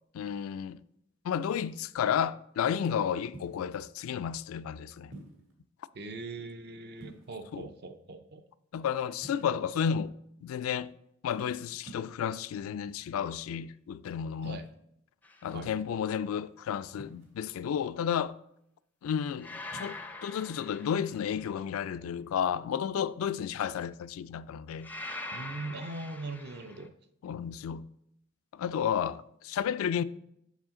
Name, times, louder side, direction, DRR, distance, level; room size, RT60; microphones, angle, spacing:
voice 1, 0.1-0.8 1.2-5.1 7.5-7.7 8.7-10.1 10.4-10.9 11.2-14.6 15.4-18.4 19.0-24.9 27.2-27.9 28.5-30.0, left 8 dB, 85° left, 0.3 m, -32 dB
sound 1, 3.3-3.8 5.1-5.5 6.9-7.6 9.2-9.9 11.8-12.4 14.4-14.7 17.0-17.5 19.6-20.0, right 1 dB, 70° right, 1.9 m, -49 dB
voice 2, 5.9-8.4 14.4-14.7 15.5-15.7 25.3-26.9, right 2 dB, 55° right, 0.6 m, -41 dB
sound 2, 15.2-15.6 19.4-21.6 24.8-26.9, left 2 dB, 10° left, 0.4 m, -43 dB
7.3 x 5.7 x 3.7 m
head